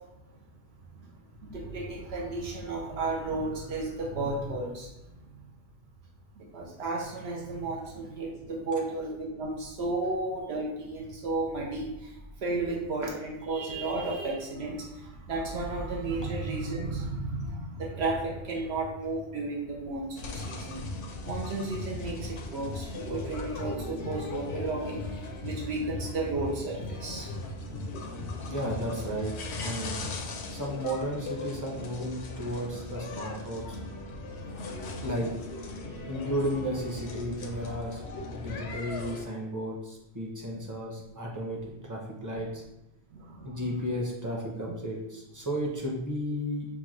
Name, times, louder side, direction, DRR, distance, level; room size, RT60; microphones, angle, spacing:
voice 1, 1.4-4.9 6.4-12.1 12.4-20.8 21.2-27.3 40.5-40.6 42.4-42.5 43.1-43.6 44.7-44.8, right 2 dB, 80° right, -2 dB, 0.9 m, -33 dB
sound 1, 20.2-39.2, left 2 dB, 85° left, 0.9 m, -38 dB
voice 2, 28.5-29.3 29.6-30.0 30.5-33.8 35.0-35.3 36.1-38.0 38.3-42.6 43.4-46.7, equal, 20° right, -2 dB, 0.7 m, -33 dB
5.7 x 2.3 x 3.1 m, 0.93 s
omnidirectional pair, 1.1 m